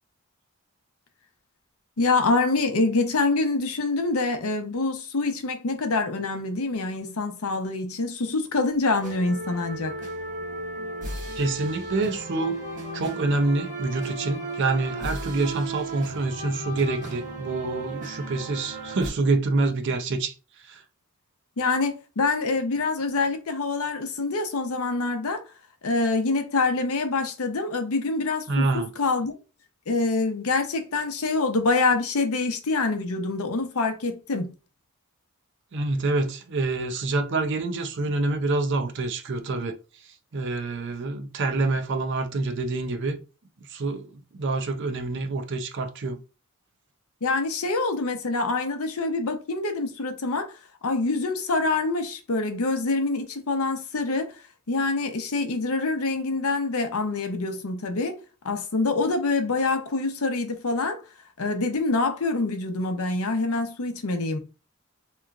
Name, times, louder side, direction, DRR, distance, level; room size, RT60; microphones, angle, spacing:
voice 1, 2.0-9.9 21.6-25.4 25.8-29.3 29.9-34.5 47.2-50.5 50.8-54.3 54.7-58.2 58.4-61.0 61.4-64.4, left 3 dB, 75° left, 0.7 m, -25 dB
sound 1, 9.0-19.1, right 2 dB, 35° right, 1.1 m, -35 dB
voice 2, 11.4-12.6 12.9-20.3 20.6-20.8 28.5-28.9 35.7-39.8 40.3-43.2 43.7-46.2, right 3 dB, 55° right, 0.5 m, -26 dB
3.5 x 3.0 x 2.4 m
head